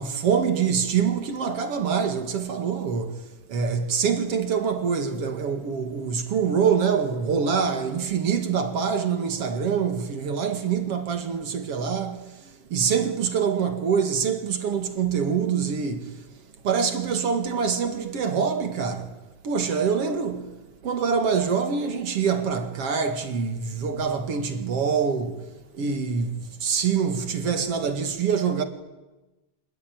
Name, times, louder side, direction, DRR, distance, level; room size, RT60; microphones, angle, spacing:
voice 1, 0.0-16.2 16.6-19.2 19.4-20.5 20.8-25.5 25.7-28.6, right 6 dB, 55° right, 2.9 m, -25 dB
26.5 x 21.0 x 9.5 m
omnidirectional pair, 3.4 m